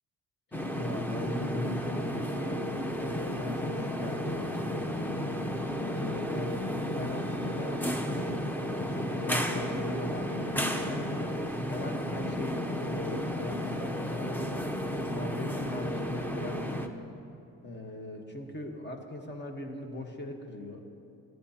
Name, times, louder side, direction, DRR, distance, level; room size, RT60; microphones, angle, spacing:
sound 1, 0.5-16.9, equal, 5° left, 0.7 m, -33 dB
voice 1, 0.7-2.6 3.2-5.2 5.9-8.4 8.7-11.3 11.7-14.7 15.1-16.9 17.6-20.8, left 1 dB, 35° left, 4 dB, 1.3 m, -39 dB
22.0 x 9.3 x 2.9 m, 2.7 s
cardioid pair, 90°, 30 cm